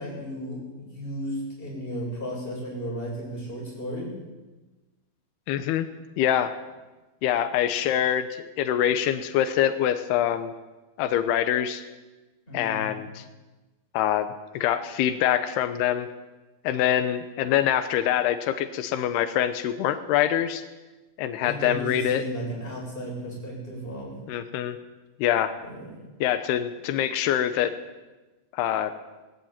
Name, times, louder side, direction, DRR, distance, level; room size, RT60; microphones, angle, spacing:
voice 1, 0.0-4.1 12.5-12.9 21.4-24.2 25.7-25.8, equal, 15° left, -3 dB, 7.9 m, -34 dB
voice 2, 5.5-5.9 6.2-6.5 7.2-10.5 11.0-11.8 12.5-13.2 13.9-14.3 14.5-16.1 16.6-20.6 21.2-22.2 24.3-24.8 25.2-25.5 26.2-27.7 28.5-28.9, left 10 dB, 85° left, 10 dB, 3.0 m, -24 dB
20.0 x 14.5 x 8.9 m, 1.2 s
omnidirectional pair, 4.5 m